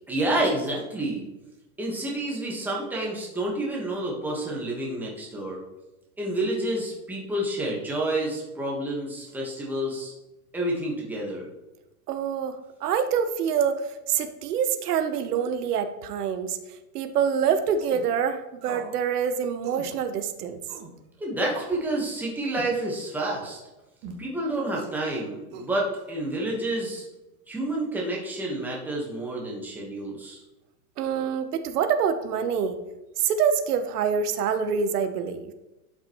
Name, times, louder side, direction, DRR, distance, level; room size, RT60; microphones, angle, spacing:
voice 1, 0.1-1.2 1.8-5.6 6.2-10.1 10.5-11.5 21.2-23.6 24.2-27.0 27.5-30.4, right 1 dB, 5° right, -3 dB, 1.3 m, -29 dB
voice 2, 12.1-16.6 16.9-20.6 31.0-32.8 33.2-35.5, right 7 dB, 85° right, 9 dB, 1.0 m, -26 dB
sound 1, 17.7-18.0 18.6-18.9 19.2-19.3 19.6-19.9 20.7-20.9 21.5-21.8 22.5-22.7 23.2-23.6 24.0-24.3 24.8-25.0 25.5-26.0, right 4 dB, 35° right, 1.4 m, -40 dB
11.5 x 5.8 x 3.0 m, 1.0 s
supercardioid pair, 160°, 45 cm